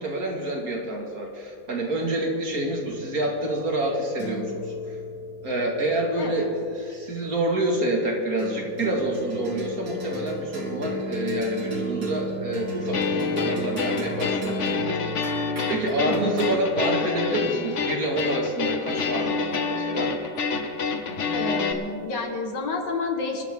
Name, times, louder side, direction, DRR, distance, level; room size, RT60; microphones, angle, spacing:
voice 1, 0.0-4.5 5.4-15.3 15.7-20.1, right 1 dB, 55° right, 0 dB, 2.6 m, -27 dB
sound 1, 2.5-7.2 8.4-18.9, left 1 dB, 85° right, 4.3 m, -34 dB
sound 2, 12.9-21.7, left 4 dB, 50° left, 1.2 m, -28 dB
voice 2, 16.0-16.6 21.3-23.4, left 3 dB, 75° left, 3 dB, 2.3 m, -30 dB
25.0 x 13.0 x 3.7 m, 2.3 s
omnidirectional pair, 1.9 m